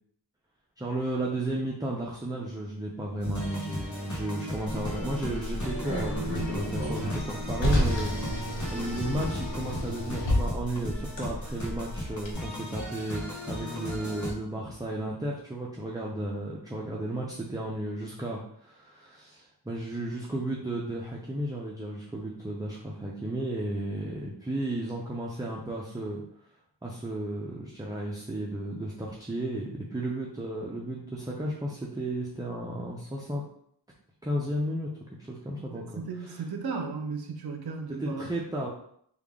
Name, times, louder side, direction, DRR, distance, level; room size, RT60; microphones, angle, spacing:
voice 1, 0.8-26.2 26.8-33.4 34.2-34.9 35.2-36.0 37.9-38.7, right 1 dB, 10° right, -3 dB, 0.5 m, -33 dB
sound 1, 3.2-14.3, left 1 dB, 40° left, 1.0 m, -37 dB
Car, 4.7-12.3, equal, 80° left, 0.9 m, -31 dB
voice 2, 35.7-38.3, right 4 dB, 55° right, 3 dB, 0.6 m, -35 dB
3.4 x 2.4 x 3.5 m, 0.66 s
wide cardioid pair, 60°, 44 cm